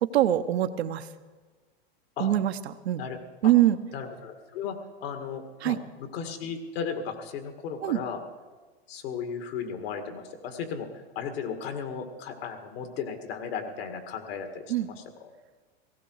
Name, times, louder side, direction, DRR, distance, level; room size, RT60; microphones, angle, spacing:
voice 1, 0.0-1.1 2.2-3.0 3.4-3.8 5.6-5.8 7.8-8.0 14.7-14.9, right 13 dB, 80° right, 9 dB, 0.9 m, -24 dB
voice 2, 3.9-5.8 6.1-8.2 8.9-10.9 11.2-15.3, left 6 dB, 65° left, 6 dB, 2.2 m, -35 dB
17.5 x 16.0 x 4.7 m, 1.3 s
hypercardioid pair, 115°, 32 cm